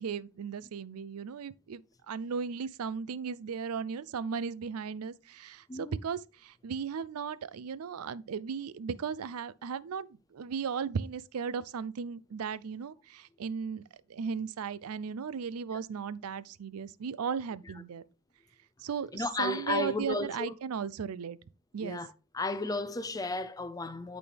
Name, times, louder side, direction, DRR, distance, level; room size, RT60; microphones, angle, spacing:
voice 1, 0.0-13.8 14.1-18.0 18.8-21.4 21.7-22.0, right 6 dB, 85° right, 0.4 m, -36 dB
voice 2, 19.1-20.5 21.8-22.1 22.3-24.2, left 2 dB, 15° left, 0.5 m, -33 dB
11.5 x 4.1 x 3.3 m
head